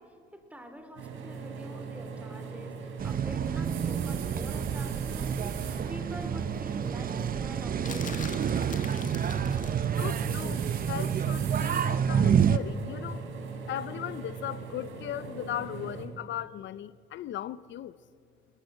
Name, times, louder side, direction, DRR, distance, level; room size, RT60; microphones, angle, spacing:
voice 1, 0.0-8.6, equal, 5° right, 3.2 m, -46 dB
sound 1, 1.0-16.1, right 5 dB, 85° right, 3.2 m, -40 dB
sound 2, 3.0-12.6, right 8 dB, 45° right, 0.7 m, -29 dB
sound 3, 7.8-9.9 12.4-12.6, left 5 dB, 40° left, 1.9 m, -43 dB
voice 2, 10.0-13.2 13.7-17.9, left 11 dB, 70° left, 0.6 m, -37 dB
19.5 x 17.5 x 7.9 m
cardioid pair, 90°, 20 cm